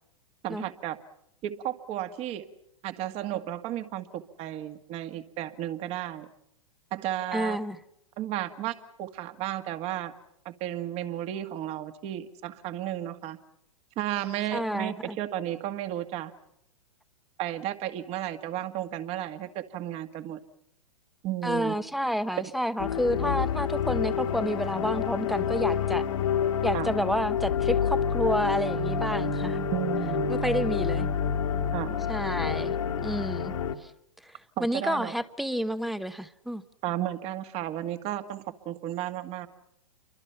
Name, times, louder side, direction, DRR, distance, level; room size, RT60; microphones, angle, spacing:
voice 1, 0.4-1.0 1.4-2.5 2.8-6.3 6.9-7.6 8.2-10.1 10.5-13.4 14.0-16.3 17.4-20.4 21.2-21.8 26.7-26.9 29.7-30.3 31.7-32.0 34.6-35.2 36.8-39.5, right 12 dB, 35° right, 1.9 m, -33 dB
voice 2, 7.3-7.8 14.5-15.2 21.4-26.1 26.6-29.7 30.3-31.1 32.1-33.9 34.2-34.3 34.6-36.6, equal, ahead, 0.9 m, -30 dB
sound 1, 22.8-33.8, left 7 dB, 70° left, 2.0 m, -28 dB
29.0 x 24.0 x 5.9 m
hypercardioid pair, 110°, 17 cm